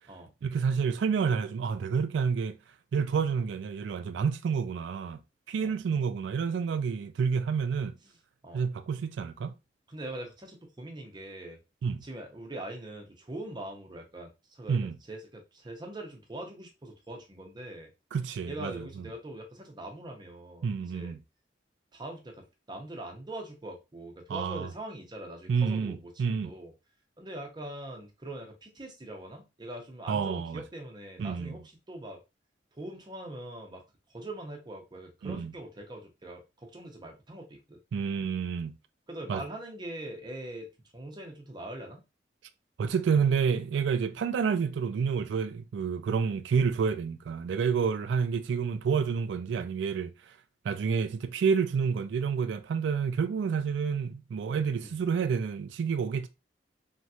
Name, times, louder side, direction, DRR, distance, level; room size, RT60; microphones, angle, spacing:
voice 1, 0.4-2.6 2.9-5.2 5.5-7.9 8.5-9.5 11.8-12.0 14.7-15.0 18.1-18.8 20.6-21.2 24.3-24.7 25.5-26.5 30.1-30.6 31.2-31.6 35.2-35.5 37.9-38.7 39.3-39.4 42.8-50.1 50.6-56.3, right 6 dB, 80° right, 0.3 m, -29 dB
voice 2, 9.9-11.6 12.0-17.9 18.4-21.1 21.9-26.7 27.2-32.2 32.8-33.8 34.1-37.8 39.1-42.0 54.8-55.0, right 1 dB, 25° right, 0.7 m, -42 dB
3.1 x 2.8 x 2.3 m
head